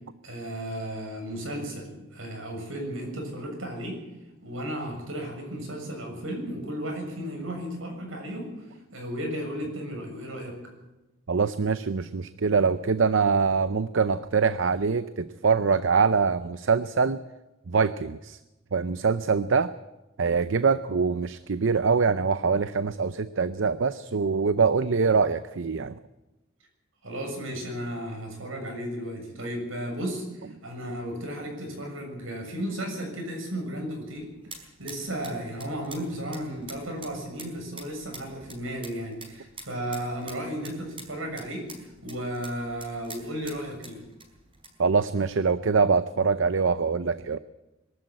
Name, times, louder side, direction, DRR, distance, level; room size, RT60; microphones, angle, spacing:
voice 1, 0.2-4.0 4.4-8.6 8.9-10.6 27.0-41.7 42.0-44.0, equal, 85° right, 3 dB, 7.1 m, -34 dB
voice 2, 11.3-17.2 17.7-18.4 18.7-19.7 20.2-25.9 44.8-47.4, right 5 dB, 65° right, 13 dB, 0.6 m, -24 dB
sound 1, 33.7-45.4, right 3 dB, 25° right, 4.8 m, -48 dB
22.5 x 13.0 x 8.8 m, 1.0 s
head